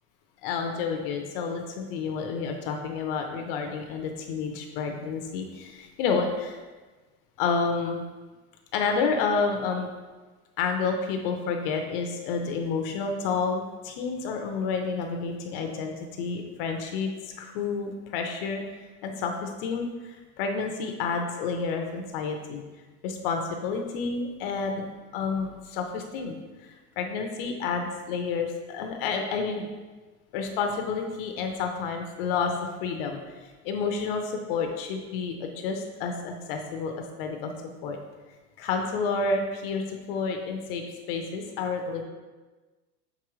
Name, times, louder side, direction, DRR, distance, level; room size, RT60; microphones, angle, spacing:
voice 1, 0.4-6.6 7.4-8.0 8.7-9.9 10.6-18.6 19.0-22.6 23.0-24.9 25.1-29.7 30.3-32.5 32.8-33.2 33.6-36.9 37.2-37.5 37.8-38.0 38.6-42.0, left 5 dB, 40° left, 4 dB, 0.5 m, -30 dB
6.6 x 4.8 x 3.0 m, 1.3 s
supercardioid pair, 160°, 44 cm